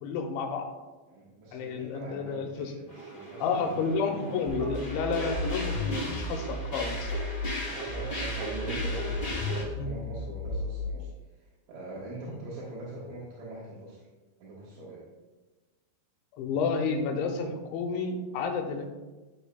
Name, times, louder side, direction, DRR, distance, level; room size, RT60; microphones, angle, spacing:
voice 1, 0.0-0.7 1.5-2.7 3.4-7.1 9.8-9.9 12.3-12.4 16.4-18.9, left 5 dB, 80° left, 3 dB, 3.1 m, -31 dB
voice 2, 1.1-4.4 6.8-6.9 7.7-11.1 11.4-14.1 14.4-15.1, right 2 dB, 80° right, -6 dB, 3.8 m, -42 dB
sound 1, 2.9-9.6, equal, 40° left, 0.8 m, -37 dB
sound 2, 4.5-7.5 7.9-10.9, left 2 dB, 55° left, 3.9 m, -34 dB
13.0 x 6.9 x 2.3 m, 1.2 s
omnidirectional pair, 5.3 m